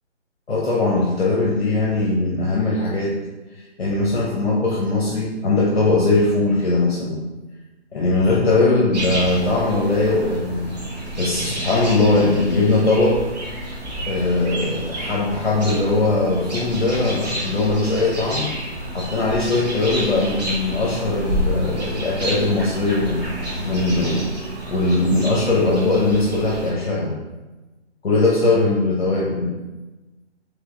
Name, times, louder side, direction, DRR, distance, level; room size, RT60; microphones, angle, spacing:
voice 1, 0.5-3.2 3.8-7.2 7.9-10.7 11.1-13.2 14.0-18.5 18.9-23.3 23.6-24.3 24.7-27.2 28.0-29.6, left 2 dB, 60° left, -4 dB, 0.9 m, -20 dB
sound 1, 8.9-26.7, right 1 dB, 35° right, 1.1 m, -30 dB
3.6 x 3.3 x 3.7 m, 1.1 s
hypercardioid pair, 175°, 35 cm